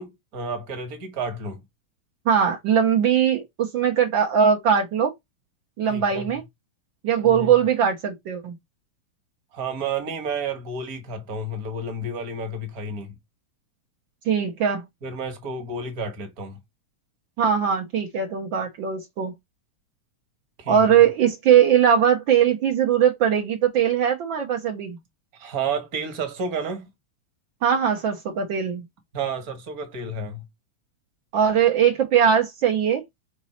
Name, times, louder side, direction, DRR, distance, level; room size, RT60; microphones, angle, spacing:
voice 1, 0.0-1.6 5.9-6.3 7.2-7.5 9.5-13.1 15.0-16.6 20.6-21.0 25.3-26.9 29.1-30.4, right 3 dB, 45° right, 1.2 m, -31 dB
voice 2, 2.3-5.1 5.8-6.4 7.0-8.5 14.2-14.8 17.4-19.3 20.7-25.0 27.6-28.8 31.3-33.0, right 8 dB, 80° right, 1.0 m, -20 dB
6.0 x 4.1 x 4.2 m
omnidirectional pair, 3.5 m